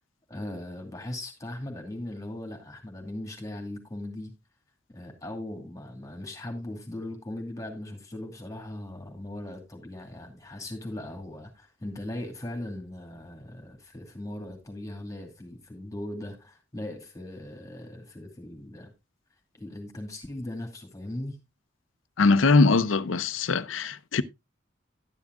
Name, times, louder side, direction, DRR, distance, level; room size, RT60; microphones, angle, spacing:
voice 1, 0.3-4.4 4.9-18.9 19.5-21.4, left 1 dB, 15° left, 2.5 m, -39 dB
voice 2, 22.2-24.2, left 3 dB, 90° left, 0.7 m, -21 dB
11.5 x 10.5 x 2.4 m
head